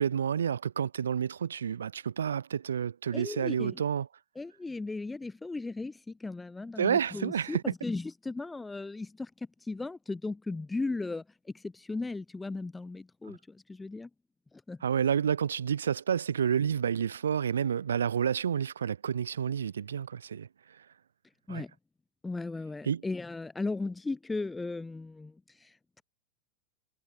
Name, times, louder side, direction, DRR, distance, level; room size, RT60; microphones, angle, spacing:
voice 1, 0.0-4.1 6.8-7.6 14.8-20.5 21.5-21.6 22.9-23.0, right 8 dB, 65° right, 1.9 m, -29 dB
voice 2, 3.1-3.8 4.3-9.3 9.7-11.2 11.5-14.1 14.7-14.8 21.5-21.7 22.2-26.0, left 3 dB, 10° left, 1.3 m, -36 dB
figure-of-eight pair, 90°, 0 cm